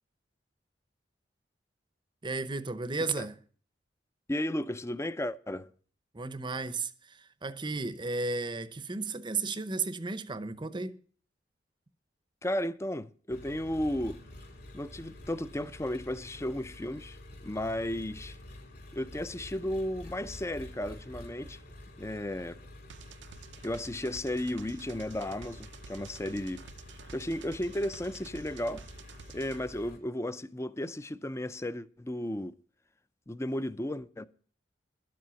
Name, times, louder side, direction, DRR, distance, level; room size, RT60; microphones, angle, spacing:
voice 1, 2.2-3.4 6.1-11.0, right 3 dB, 25° right, 0.7 m, -34 dB
voice 2, 4.3-5.7 12.4-14.2 14.7-17.2 17.4-18.4 18.9-21.6 22.0-22.6 23.6-26.6 27.1-28.8 29.3-32.5 33.3-34.3, left 1 dB, 15° left, 0.5 m, -34 dB
Engine, 13.3-30.0, left 1 dB, 55° left, 4.1 m, -49 dB
sound 1, 22.9-29.6, right 6 dB, 65° right, 0.6 m, -51 dB
12.0 x 7.7 x 6.9 m
head